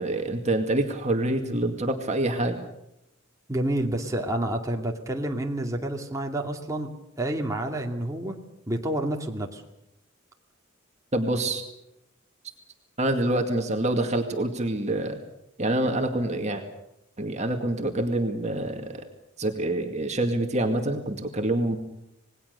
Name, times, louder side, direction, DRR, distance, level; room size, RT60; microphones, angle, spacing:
voice 1, 0.0-2.6 11.1-11.6 13.0-15.2 15.6-16.6 17.2-19.1 19.4-21.8, right 1 dB, 35° right, 4 dB, 2.2 m, -26 dB
voice 2, 3.5-8.4 8.7-9.6, right 1 dB, 15° right, 1 dB, 2.4 m, -29 dB
27.0 x 20.0 x 6.8 m, 0.85 s
head